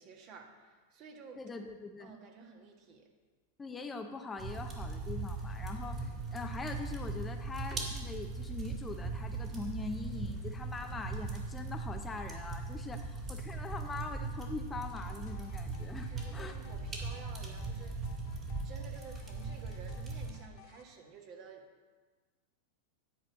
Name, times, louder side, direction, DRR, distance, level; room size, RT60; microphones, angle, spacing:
voice 1, 0.0-1.4 2.0-3.1 16.1-18.0 18.6-21.7, right 5 dB, 45° right, 2 dB, 1.5 m, -52 dB
voice 2, 1.4-2.2 3.6-16.6, left 4 dB, 15° left, 5 dB, 0.7 m, -42 dB
sound 1, 4.4-20.3, right 3 dB, 30° right, 2.3 m, -39 dB
sound 2, 14.8-20.8, left 7 dB, 50° left, 1.2 m, -58 dB
10.0 x 4.5 x 7.3 m, 1.4 s
hypercardioid pair, 95°, 0 cm